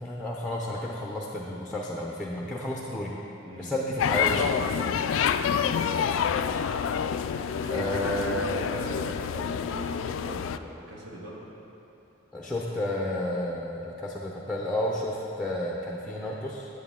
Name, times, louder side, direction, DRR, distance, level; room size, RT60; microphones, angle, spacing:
voice 1, 0.0-3.1 3.6-4.4 7.7-8.4 12.3-16.7, left 1 dB, ahead, -3 dB, 0.6 m, -31 dB
voice 2, 3.4-5.3 7.6-11.5, equal, 60° right, -5 dB, 1.8 m, -41 dB
sound 1, 4.0-10.6, left 7 dB, 75° left, 0.3 m, -28 dB
10.5 x 7.8 x 3.7 m, 3.0 s
head